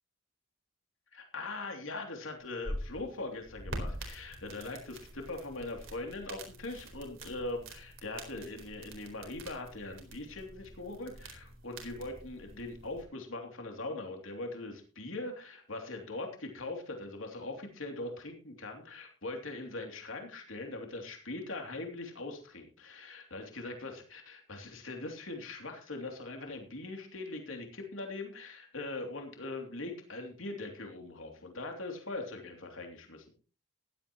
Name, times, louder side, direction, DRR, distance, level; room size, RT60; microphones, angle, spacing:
voice 1, 1.1-33.3, left 2 dB, 85° left, 3 dB, 3.0 m, -41 dB
sound 1, 2.4-13.0, right 1 dB, 85° right, 4.2 m, -45 dB
16.0 x 12.5 x 3.1 m, 0.36 s
head